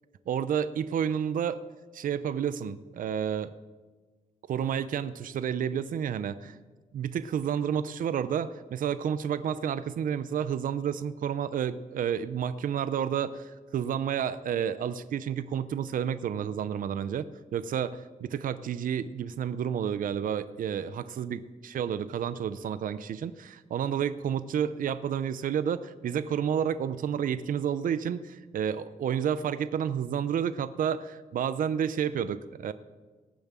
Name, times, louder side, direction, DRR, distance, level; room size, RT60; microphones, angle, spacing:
voice 1, 0.3-1.6 1.9-3.5 4.5-6.6 6.9-32.7, right 8 dB, 70° right, 14 dB, 0.6 m, -30 dB
18.0 x 7.2 x 7.4 m, 1.3 s
wide cardioid pair, 165°, 15 cm